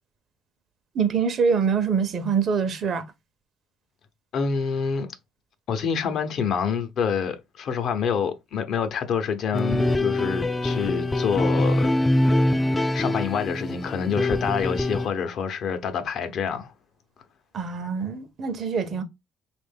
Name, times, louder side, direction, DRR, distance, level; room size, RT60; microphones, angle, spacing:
voice 1, 0.9-3.0 17.5-19.0, right 6 dB, 50° right, 0.7 m, -24 dB
voice 2, 4.3-5.1 5.7-11.9 12.9-16.7, left 6 dB, 60° left, 0.7 m, -27 dB
sound 1, 9.5-15.1, left 1 dB, 15° left, 0.4 m, -24 dB
3.5 x 2.5 x 3.5 m
cardioid pair, 105°, 0 cm